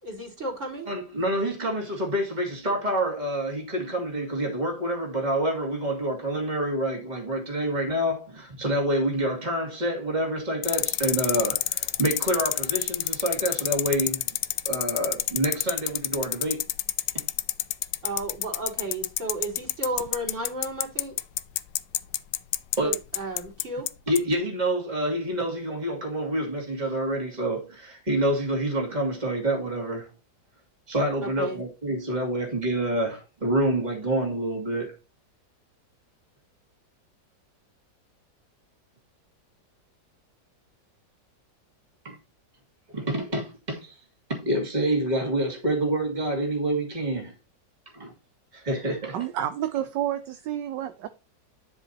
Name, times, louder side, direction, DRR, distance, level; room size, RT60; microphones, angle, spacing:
voice 1, 0.0-0.9 18.0-21.1 22.8-23.9 31.2-31.6, right 1 dB, 40° right, 4.1 m, -33 dB
voice 2, 0.9-14.2 14.7-16.6 17.1-17.2 22.8-22.9 24.1-30.1 30.9-34.9 42.0-42.2 42.9-44.0 44.3-47.3 47.9-48.1 48.5-49.2, right 1 dB, 20° right, 2.7 m, -27 dB
sound 1, 10.6-23.9 24.2-24.3, left 14 dB, 75° left, 1.3 m, -27 dB
voice 3, 49.1-51.1, right 11 dB, 70° right, 1.3 m, -29 dB
10.0 x 7.2 x 2.8 m
omnidirectional pair, 2.0 m